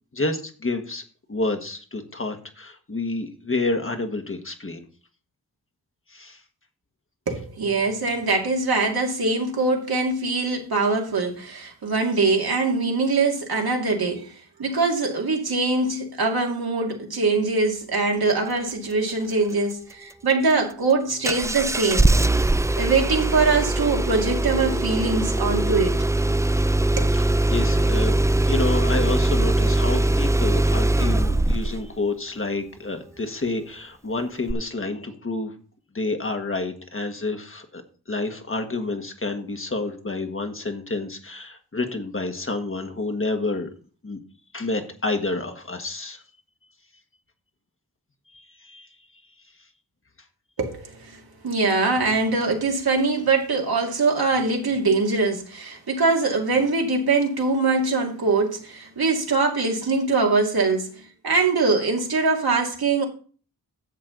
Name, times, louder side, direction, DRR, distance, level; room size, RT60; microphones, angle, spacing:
voice 1, 0.1-1.0 1.3-4.8 6.1-6.4 26.5-26.6 27.2-28.2 28.5-35.5 35.9-37.8 38.1-43.7 44.0-44.2 44.5-46.2 48.3-48.9, left 3 dB, 35° left, 1.6 m, -29 dB
voice 2, 7.3-22.1 22.8-25.9 27.0-27.1 50.6-63.0, right 3 dB, 70° right, 2.6 m, -23 dB
Engine starting, 21.2-31.9 34.5-34.6, right 1 dB, 10° right, 0.3 m, -21 dB
11.0 x 7.6 x 4.0 m
wide cardioid pair, 80°, 38 cm